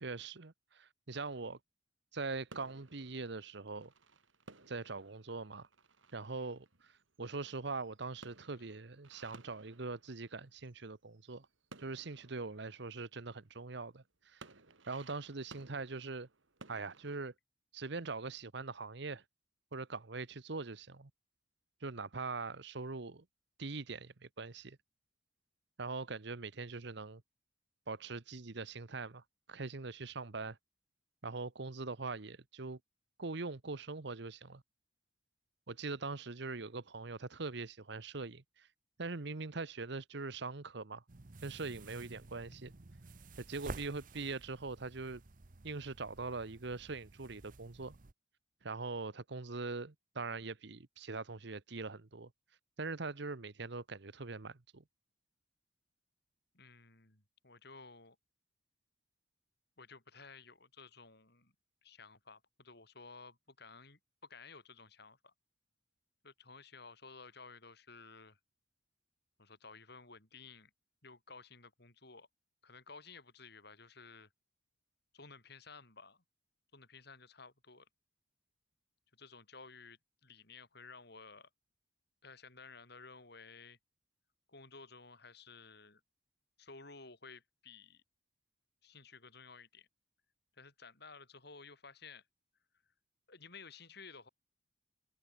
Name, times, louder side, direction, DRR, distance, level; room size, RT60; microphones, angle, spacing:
voice 1, 0.0-1.6 2.1-3.9 4.7-5.7 6.1-6.9 7.2-11.5 11.8-14.4 14.9-16.3 16.7-17.3 17.7-19.2 19.7-21.1 21.8-23.2 23.6-24.8 25.8-27.2 27.9-29.2 29.5-30.6 31.2-32.8 33.2-34.6 35.7-38.7 39.0-41.0 41.4-42.7 43.4-45.2 45.6-48.0 48.6-52.3 52.8-54.8, right 3 dB, 65° right, 1.1 m, -42 dB
sound 1, 2.5-10.9 11.1-13.7 14.2-17.2, right 3 dB, 85° right, 3.0 m, -59 dB
sound 2, 41.1-48.1, right 3 dB, 45° right, 0.9 m, -52 dB
voice 2, 56.5-58.2 59.8-61.5 61.8-65.3 66.2-68.4 69.4-70.7 71.0-72.3 72.6-74.3 75.1-76.2 76.7-77.9 79.1-81.5 82.2-83.8 84.5-86.0 86.6-88.0 88.8-89.9 90.6-92.2 93.3-94.3, left 4 dB, 60° left, 7.3 m, -55 dB
head